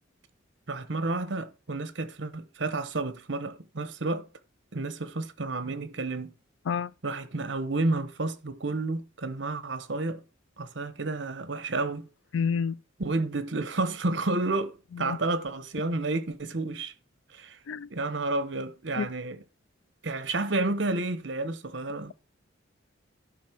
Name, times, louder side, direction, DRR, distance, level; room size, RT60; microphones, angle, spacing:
voice 1, 0.7-4.3 4.7-6.3 7.0-10.2 10.6-12.1 13.0-16.9 17.3-17.6 17.9-19.4 20.0-22.1, right 2 dB, 65° right, 1.0 m, -31 dB
voice 2, 12.3-12.8 15.0-15.2 17.7-17.9 19.0-19.1, left 6 dB, 75° left, 0.4 m, -28 dB
11.5 x 5.4 x 4.5 m
head